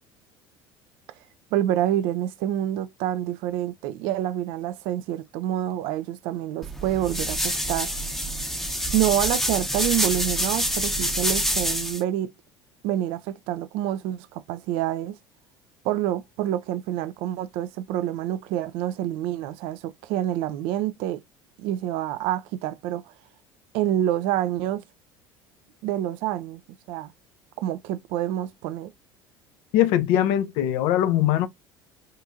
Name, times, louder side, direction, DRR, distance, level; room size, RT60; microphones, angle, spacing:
voice 1, 1.5-7.9 8.9-12.3 12.8-15.1 15.8-21.2 21.6-23.1 23.7-24.8 25.8-26.6 26.9-27.1 27.6-28.9, right 12 dB, 50° right, 0.4 m, -27 dB
sound 1, 6.6-12.0, equal, ahead, 0.8 m, -26 dB
voice 2, 29.7-31.5, left 12 dB, 55° left, 0.6 m, -21 dB
5.1 x 2.7 x 2.6 m
figure-of-eight pair, 65°, 12 cm